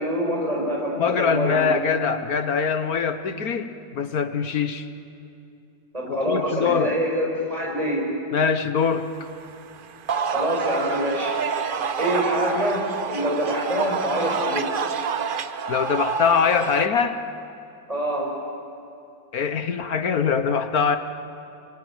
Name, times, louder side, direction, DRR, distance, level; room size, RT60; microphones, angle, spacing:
voice 1, 0.0-1.6 5.9-8.1 10.3-11.4 12.0-14.7 17.9-18.3, equal, 20° right, -1 dB, 5.9 m, -25 dB
voice 2, 1.0-4.9 6.1-6.9 8.3-9.0 15.7-17.2 19.3-21.0, left 6 dB, 55° left, 9 dB, 1.3 m, -23 dB
sound 1, 9.1-16.9, right 6 dB, 80° right, 0.4 m, -28 dB
26.0 x 25.0 x 8.9 m, 2.6 s
omnidirectional pair, 2.1 m